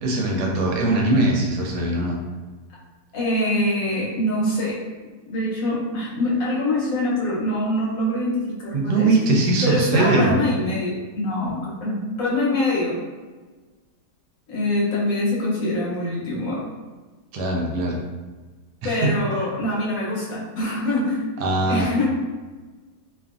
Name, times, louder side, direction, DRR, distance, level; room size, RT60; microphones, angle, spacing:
voice 1, 0.0-2.2 8.7-10.4 17.3-18.0 18.8-19.1 21.4-21.8, right 2 dB, 80° right, -1 dB, 1.1 m, -21 dB
voice 2, 3.1-4.8 5.2-9.1 9.6-13.0 14.5-16.6 18.8-21.3 21.7-22.1, left 1 dB, 65° left, -6 dB, 1.0 m, -24 dB
2.8 x 2.4 x 2.3 m, 1.3 s
omnidirectional pair, 1.8 m